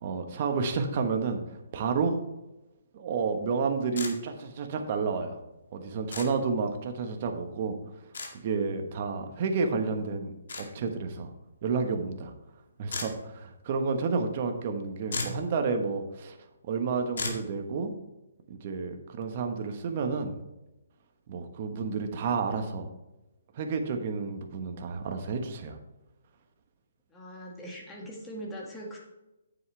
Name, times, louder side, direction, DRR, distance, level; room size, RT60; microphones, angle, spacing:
voice 1, 0.0-2.2 2.9-5.4 5.7-7.8 8.3-11.3 11.6-12.3 12.8-16.4 16.7-17.9 18.5-20.4 21.3-22.9 23.5-25.8, right 5 dB, 40° right, 5 dB, 1.2 m, -30 dB
sound 1, 4.0-4.1 6.1-6.3 8.1-8.3 10.5-10.7 12.9-13.1 14.7-14.8 15.1-15.4 17.2-17.4, left 3 dB, 70° left, 2.1 m, -34 dB
voice 2, 27.1-29.0, equal, 10° left, -2 dB, 1.9 m, -41 dB
9.5 x 7.5 x 3.3 m, 0.98 s
hypercardioid pair, 160°, 0 cm